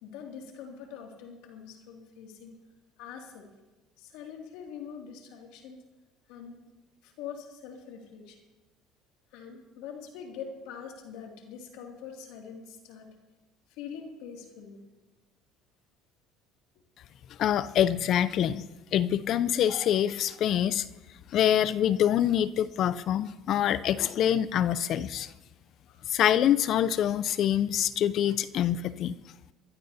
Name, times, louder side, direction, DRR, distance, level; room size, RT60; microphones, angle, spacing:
voice 1, 0.0-2.6 3.0-3.5 4.0-5.8 6.3-6.7 7.0-8.4 9.3-13.1 13.7-14.8 16.8-16.9 25.9-26.1, left 7 dB, 80° left, 2 dB, 2.3 m, -44 dB
voice 2, 17.4-18.6 18.9-20.9 21.3-25.3 26.1-29.1, left 10 dB, 55° left, 16 dB, 0.4 m, -25 dB
22.5 x 12.5 x 2.7 m, 1.2 s
supercardioid pair, 90°, 0 cm